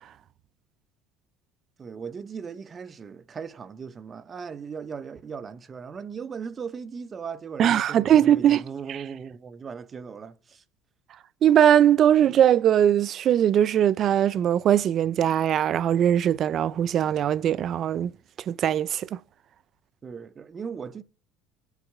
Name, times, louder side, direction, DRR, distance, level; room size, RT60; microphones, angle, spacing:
voice 1, 1.8-10.6 20.0-21.0, right 6 dB, 30° right, 1.0 m, -38 dB
voice 2, 7.6-8.6 11.4-18.1 18.5-19.2, right 10 dB, 50° right, 0.5 m, -20 dB
24.5 x 8.3 x 3.6 m
supercardioid pair, 100°, 0 cm